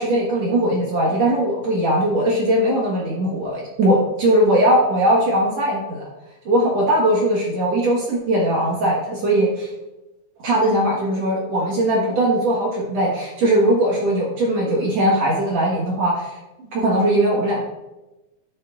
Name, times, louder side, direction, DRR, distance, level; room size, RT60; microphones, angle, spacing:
voice 1, 0.0-6.0 6.5-9.7 10.4-17.6, right 1 dB, 55° right, -4 dB, 2.3 m, -20 dB
12.0 x 7.4 x 2.4 m, 1.0 s
omnidirectional pair, 3.9 m